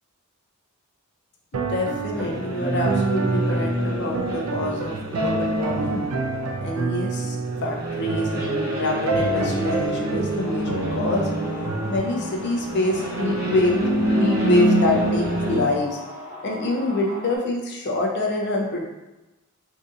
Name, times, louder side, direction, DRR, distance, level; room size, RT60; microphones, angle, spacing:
voice 1, 1.5-6.0 6.6-7.4 7.6-11.3 11.9-16.0 16.4-18.8, left 2 dB, 50° left, -1 dB, 0.5 m, -26 dB
sound 1, 1.5-12.0, right 3 dB, 70° right, 0.4 m, -28 dB
sound 2, 2.1-15.6, right 1 dB, 45° right, 1.1 m, -26 dB
sound 3, 10.4-17.4, left 1 dB, 10° right, 0.6 m, -39 dB
2.7 x 2.6 x 3.5 m, 1.0 s
head